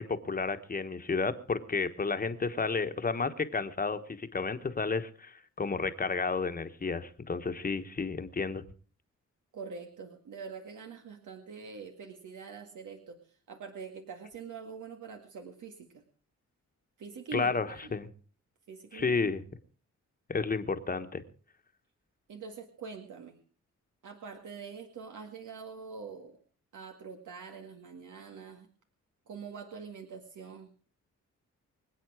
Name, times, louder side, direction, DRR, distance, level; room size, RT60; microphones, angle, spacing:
voice 1, 0.0-8.6 17.3-18.1 18.9-19.4 20.3-21.2, left 4 dB, 30° left, 9 dB, 1.3 m, -32 dB
voice 2, 9.5-13.2 13.5-16.0 17.0-17.9 18.7-19.2 22.3-23.4 24.0-26.4 26.7-28.7 29.3-30.7, right 5 dB, 85° right, 4 dB, 2.1 m, -44 dB
25.5 x 8.7 x 4.9 m, 0.40 s
wide cardioid pair, 135°, 30 cm